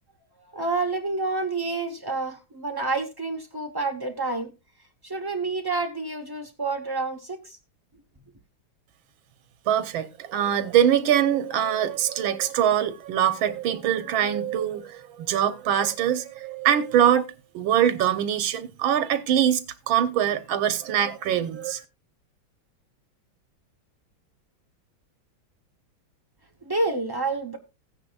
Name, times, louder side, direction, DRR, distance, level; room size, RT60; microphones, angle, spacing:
voice 1, 0.5-4.5 5.0-7.6 26.6-27.6, right 3 dB, 40° right, 0.3 m, -28 dB
voice 2, 9.7-17.3 17.5-19.6 19.9-21.8, right 10 dB, 85° right, 1.7 m, -23 dB
15.5 x 9.7 x 2.3 m
omnidirectional pair, 2.1 m